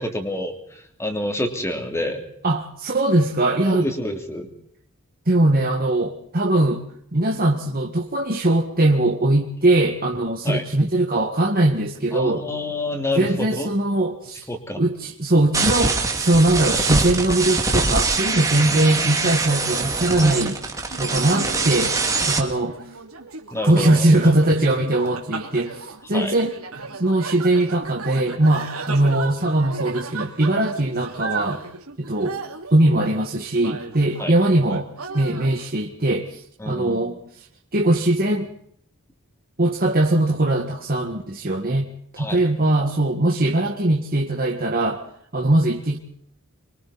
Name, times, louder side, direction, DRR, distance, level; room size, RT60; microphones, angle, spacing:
voice 1, 0.0-2.2 3.6-4.5 10.4-10.7 12.1-13.7 14.5-14.8 18.5-18.8 23.5-24.3 26.1-26.4 34.2-34.3 36.6-37.2 42.2-42.4, left 1 dB, 15° left, 4 dB, 3.2 m, -28 dB
voice 2, 2.4-3.9 5.3-6.8 7.1-12.4 13.2-14.5 14.8-20.6 21.0-21.9 22.2-22.8 23.6-26.5 26.9-31.6 32.0-32.4 32.7-34.9 35.1-37.4 37.7-38.5 39.6-41.9 42.1-45.0 45.3-46.0, right 1 dB, 45° right, 0 dB, 1.9 m, -20 dB
sound 1, 15.5-22.4, right 3 dB, 15° right, 2.6 m, -23 dB
sound 2, 20.9-34.3 34.7-35.6, right 4 dB, 85° right, 3.0 m, -35 dB
26.5 x 24.0 x 4.3 m, 0.66 s
head